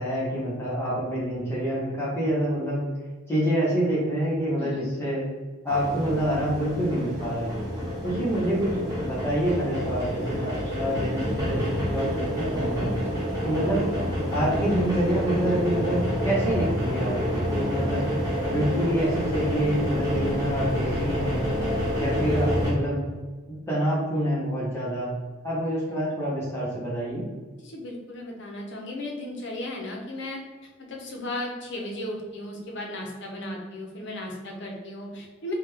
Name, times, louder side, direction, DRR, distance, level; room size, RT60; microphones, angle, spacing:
voice 1, 0.0-2.8 3.3-5.2 5.6-7.5 8.0-12.9 13.4-13.9 14.3-16.0 16.2-18.1 18.5-21.5 22.0-23.0 23.5-25.1 25.4-27.2, right 1 dB, 10° left, -8 dB, 0.8 m, -27 dB
voice 2, 4.5-4.9 13.1-13.3 20.1-20.4 27.6-30.4 30.9-35.5, left 1 dB, 55° left, 0 dB, 0.7 m, -36 dB
sound 1, 5.7-22.7, equal, 15° right, 1.2 m, -28 dB
sound 2, 13.8-15.1 15.6-17.0 17.5-18.9 19.4-21.4 21.8-23.2, left 1 dB, 80° right, 0.9 m, -44 dB
3.7 x 2.2 x 3.2 m, 1.3 s
head